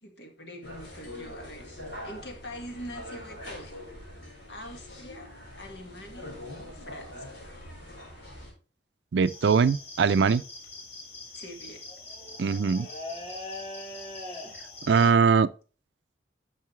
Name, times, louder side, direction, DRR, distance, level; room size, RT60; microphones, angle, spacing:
voice 1, 0.0-1.7 2.0-3.8 4.5-5.3 5.6-7.4 11.3-11.8, equal, 70° left, 1.9 m, -44 dB
sound 1, 0.6-8.5, left 1 dB, 90° left, 4.7 m, -43 dB
voice 2, 9.1-10.4 12.4-12.9 14.9-15.5, right 5 dB, 70° right, 0.4 m, -21 dB
sound 2, 9.2-15.1, left 2 dB, 30° left, 2.1 m, -41 dB
10.5 x 6.5 x 3.3 m
head